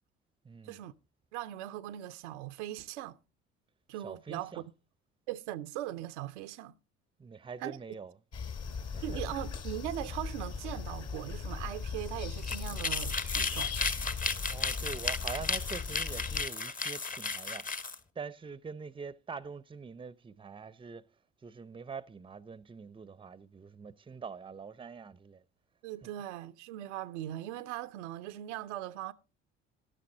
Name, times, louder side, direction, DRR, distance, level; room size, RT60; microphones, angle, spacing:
voice 1, 0.4-0.8 4.0-4.6 7.2-8.1 8.9-9.2 14.5-17.7 18.2-21.1 21.4-25.4, right 5 dB, 15° right, 0.6 m, -44 dB
voice 2, 1.3-3.2 3.9-4.6 5.3-6.7 7.6-7.8 9.0-13.7 25.8-29.1, right 13 dB, 80° right, 0.6 m, -40 dB
sound 1, 8.3-16.5, left 5 dB, 45° left, 1.5 m, -38 dB
sound 2, 12.3-18.0, left 4 dB, 25° left, 0.9 m, -34 dB
12.0 x 10.0 x 3.8 m
hypercardioid pair, 55°, 35 cm